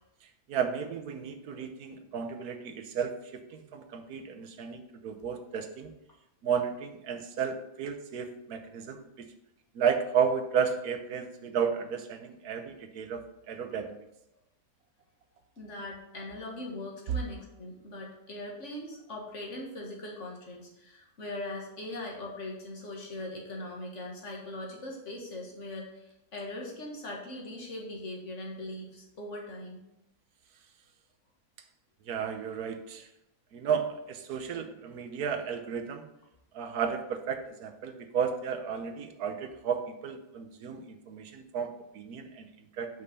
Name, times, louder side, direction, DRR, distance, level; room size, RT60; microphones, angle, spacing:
voice 1, 0.5-5.9 6.4-9.3 9.7-14.0 32.1-33.1 33.5-36.1 36.5-42.9, right 7 dB, 90° right, 7 dB, 1.4 m, -33 dB
voice 2, 15.6-29.8, left 1 dB, 55° left, -1 dB, 1.9 m, -40 dB
5.5 x 5.4 x 6.5 m, 0.87 s
omnidirectional pair, 1.6 m